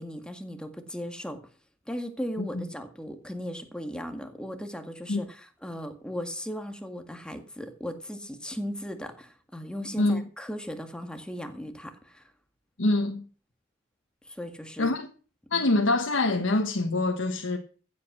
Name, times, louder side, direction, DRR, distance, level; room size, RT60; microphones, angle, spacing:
voice 1, 0.0-1.4 1.9-12.3 14.3-14.9 15.5-15.7, equal, 5° left, 1.9 m, -37 dB
voice 2, 12.8-13.2 14.8-15.1 15.5-17.6, left 2 dB, 85° left, 1.2 m, -25 dB
15.0 x 8.5 x 6.1 m
head